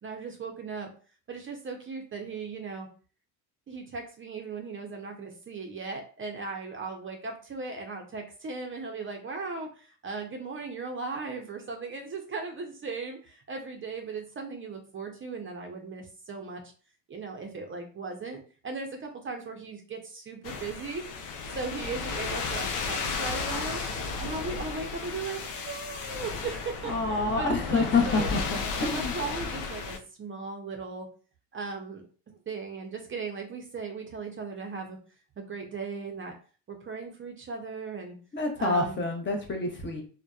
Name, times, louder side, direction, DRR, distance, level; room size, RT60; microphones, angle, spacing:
voice 1, 0.0-0.9 1.3-2.9 3.7-16.6 17.1-21.1 21.5-23.8 24.2-28.3 28.8-31.1 31.5-32.1 32.5-35.0 35.4-36.3 36.7-38.2 38.6-39.0, right 4 dB, 30° right, 3 dB, 0.5 m, -37 dB
sound 1, 20.4-30.0, left 4 dB, 85° left, 0.6 m, -34 dB
voice 2, 26.8-29.1 38.3-40.0, left 3 dB, 25° left, 2 dB, 0.6 m, -27 dB
2.7 x 2.1 x 2.3 m, 0.39 s
supercardioid pair, 85°, 45 cm